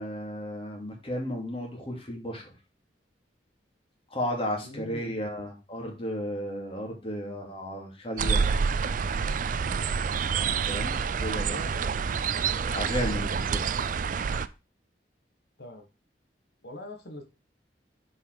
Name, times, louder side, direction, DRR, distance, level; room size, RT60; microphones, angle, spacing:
voice 1, 0.0-2.4 4.1-8.4 10.7-11.6 12.6-14.0, equal, 35° left, 0 dB, 2.5 m, -34 dB
voice 2, 4.6-5.2 11.3-12.0 15.6-15.9 16.6-17.2, left 1 dB, 65° left, 4 dB, 1.4 m, -42 dB
sound 1, 8.2-14.5, right 6 dB, 50° right, 0.4 m, -28 dB
6.7 x 4.9 x 4.6 m, 0.29 s
head